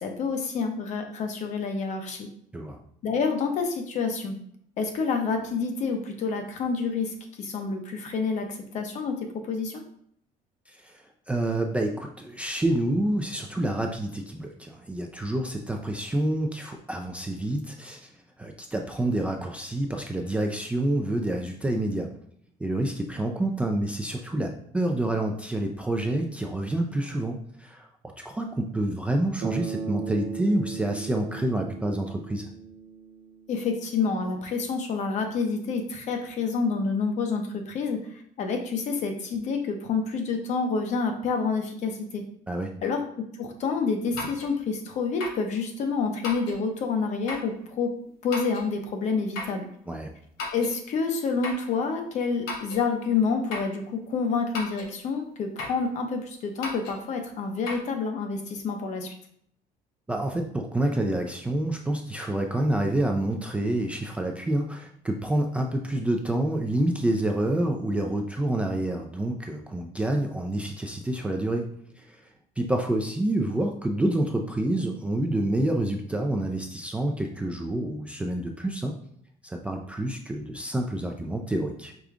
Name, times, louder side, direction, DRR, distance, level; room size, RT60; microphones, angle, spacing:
voice 1, 0.0-2.3 3.0-4.3 4.8-9.8 33.5-38.0 38.4-42.2 42.8-43.0 43.4-47.9 48.2-49.7 50.5-59.1, left 4 dB, 50° left, 4 dB, 0.7 m, -28 dB
voice 2, 10.7-18.1 18.4-22.1 22.6-27.9 28.2-32.5 42.5-42.7 49.9-50.1 60.1-71.7 72.0-72.2 72.6-79.0 79.4-81.9, right 1 dB, 10° right, 2 dB, 0.3 m, -28 dB
Bass guitar, 29.4-33.6, right 6 dB, 65° right, 0.5 m, -37 dB
sound 1, 44.2-44.5 45.2-45.5 46.2-46.6 47.3-47.5 48.3-48.7 49.4-49.6 50.4-50.8 51.4-51.7 52.5-52.9 53.5-53.8 54.5-54.9 55.6-55.8 56.6-57.0 57.7-57.8, left 3 dB, 90° left, 1.0 m, -35 dB
5.0 x 2.3 x 3.6 m, 0.67 s
cardioid pair, 150°, 15 cm